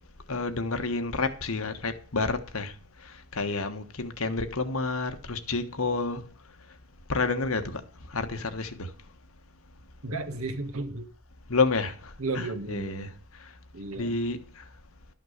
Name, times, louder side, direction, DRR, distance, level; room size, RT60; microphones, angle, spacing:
voice 1, 0.3-2.7 3.0-6.2 7.1-7.8 8.1-8.9 11.5-12.1 12.3-13.1 14.0-14.4, left 3 dB, 80° left, 1.4 m, -29 dB
voice 2, 10.0-11.1 12.2-13.1 13.7-14.2, right 2 dB, 80° right, 1.6 m, -34 dB
12.5 x 5.9 x 6.5 m
head